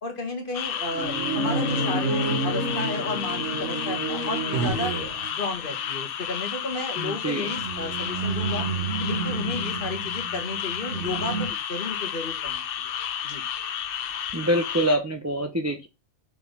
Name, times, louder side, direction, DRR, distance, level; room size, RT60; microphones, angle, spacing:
voice 1, 0.0-4.9 5.4-8.7 9.0-12.9 13.2-13.4, left 3 dB, 40° left, 4 dB, 1.5 m, -33 dB
sound 1, 0.5-15.0, left 9 dB, 60° left, 0.7 m, -32 dB
sound 2, 0.7-5.8 6.7-6.8 7.5-11.5, right 3 dB, 65° right, 1.4 m, -29 dB
voice 2, 7.0-7.5 14.3-15.9, right 1 dB, 20° right, 5 dB, 0.5 m, -25 dB
5.1 x 3.8 x 5.3 m, 0.24 s
omnidirectional pair, 1.4 m